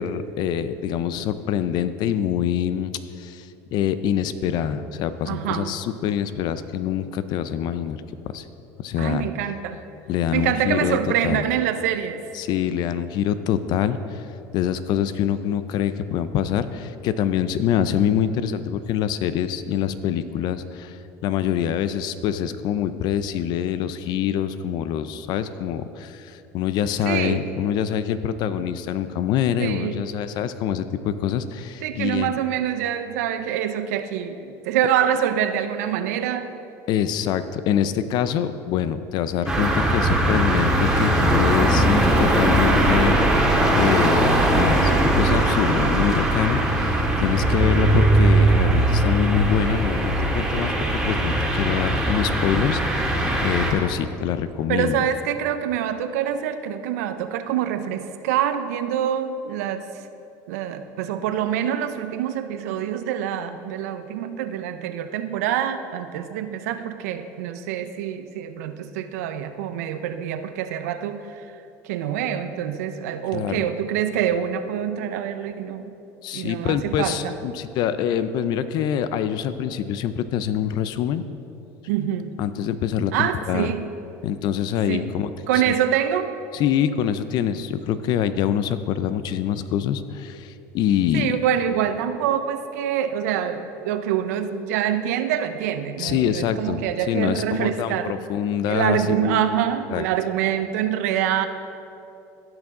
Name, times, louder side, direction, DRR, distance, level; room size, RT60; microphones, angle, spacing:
voice 1, 0.0-2.9 3.2-8.0 8.3-8.4 8.8-9.3 10.1-11.0 11.2-11.4 12.3-14.2 14.5-21.0 21.2-32.3 36.9-55.0 73.3-73.6 76.2-81.2 82.4-83.7 84.2-85.6 86.5-91.3 96.0-99.6 99.9-100.0, left 9 dB, 60° left, 12 dB, 0.6 m, -25 dB
voice 2, 5.3-5.8 9.0-9.8 10.3-12.2 27.0-27.4 29.6-30.1 31.8-36.5 54.7-59.9 60.5-71.4 71.8-75.9 76.3-77.3 81.9-82.3 83.1-83.9 84.9-85.1 85.5-86.3 91.1-98.2 98.6-101.5, right 10 dB, 85° right, 10 dB, 0.6 m, -25 dB
sound 1, 39.5-53.7, right 1 dB, 5° right, 1.8 m, -20 dB
16.5 x 6.1 x 3.8 m, 2.8 s
supercardioid pair, 95°, 8 cm